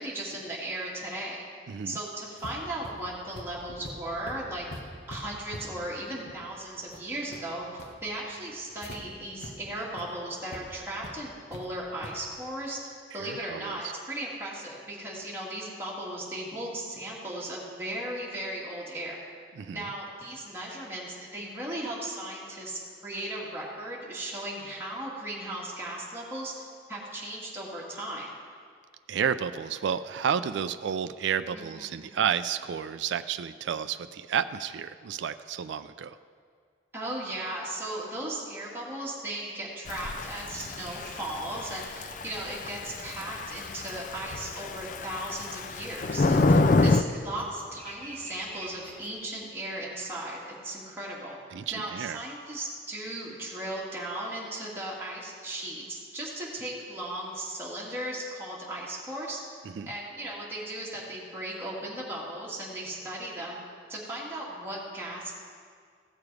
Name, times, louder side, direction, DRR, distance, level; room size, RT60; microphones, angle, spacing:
voice 1, 0.0-1.4 1.8-4.7 5.1-12.8 13.1-19.2 19.7-26.5 26.9-28.3 31.5-31.6 32.0-32.2 36.9-51.4 51.7-59.4 59.9-63.6 63.9-65.3, right 1 dB, 10° right, -5 dB, 2.0 m, -36 dB
voice 2, 1.7-2.0 13.1-13.8 19.6-19.9 29.1-36.2 51.5-52.2 59.8-59.9, right 8 dB, 75° right, 11 dB, 0.3 m, -31 dB
sound 1, 2.4-9.0 9.4-9.5 9.9-10.0 10.5-10.6 11.0-11.6 12.0-12.2, left 1 dB, 60° left, 1.2 m, -45 dB
Thunder / Rain, 39.9-47.0, left 3 dB, 45° left, 0.3 m, -27 dB
sound 2, 40.4-49.1, right 1 dB, 10° left, 1.2 m, -50 dB
16.5 x 6.9 x 4.8 m, 2.1 s
head